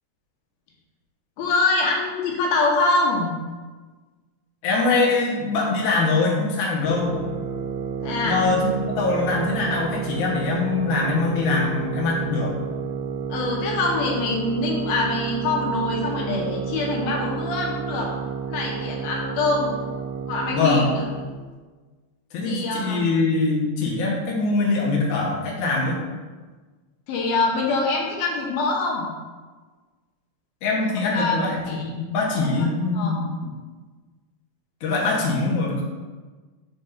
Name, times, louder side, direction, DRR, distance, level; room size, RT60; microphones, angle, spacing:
voice 1, 1.4-3.3 8.0-8.4 13.3-18.1 18.5-19.7 20.3-21.1 22.4-23.1 27.1-29.1 31.1-31.4 31.7-31.9 32.6-32.7 32.9-33.2, left 3 dB, 85° left, -2 dB, 2.9 m, -24 dB
voice 2, 4.6-7.2 8.3-12.5 20.5-21.0 22.3-26.0 30.6-31.6 32.0-33.5 34.8-35.8, left 3 dB, 60° left, -3 dB, 2.4 m, -23 dB
sound 1, 6.9-21.4, right 7 dB, 75° right, 2.1 m, -31 dB
5.3 x 5.0 x 5.7 m, 1.3 s
omnidirectional pair, 4.2 m